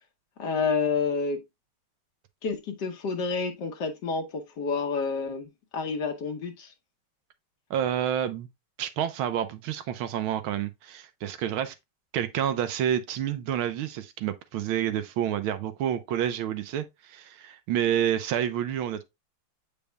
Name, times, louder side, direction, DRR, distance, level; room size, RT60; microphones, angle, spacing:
voice 1, 0.4-1.4 2.4-5.5 5.7-6.7, left 5 dB, 60° left, 1.5 m, -29 dB
voice 2, 7.7-8.5 8.8-11.7 12.1-19.1, right 10 dB, 80° right, 1.5 m, -29 dB
8.2 x 5.2 x 2.2 m
omnidirectional pair, 2.3 m